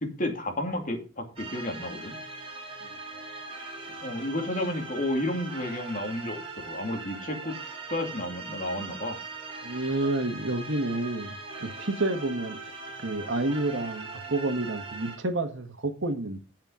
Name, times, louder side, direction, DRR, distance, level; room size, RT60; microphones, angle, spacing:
voice 1, 0.0-2.2 4.0-7.5 7.9-9.2, left 1 dB, 40° left, 2.5 m, -31 dB
sound 1, 1.4-15.2, right 3 dB, 30° right, 3.1 m, -40 dB
voice 2, 9.6-12.6 13.0-16.4, right 2 dB, 75° right, 1.6 m, -29 dB
9.1 x 7.6 x 5.0 m
head